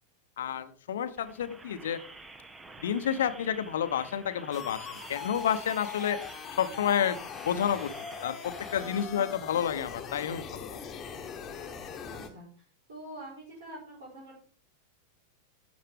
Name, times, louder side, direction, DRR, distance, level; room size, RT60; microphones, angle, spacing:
voice 1, 0.4-2.0 2.8-6.2 6.5-10.8, left 9 dB, 60° left, 11 dB, 0.9 m, -30 dB
sound 1, 1.1-9.0, right 3 dB, 15° right, 1.0 m, -49 dB
sound 2, 4.5-12.3, left 7 dB, 25° left, 1.4 m, -41 dB
voice 2, 11.9-12.5 12.9-14.4, right 1 dB, 65° right, -5 dB, 4.5 m, -45 dB
12.5 x 8.5 x 3.6 m, 0.42 s
figure-of-eight pair, 90°, 0 cm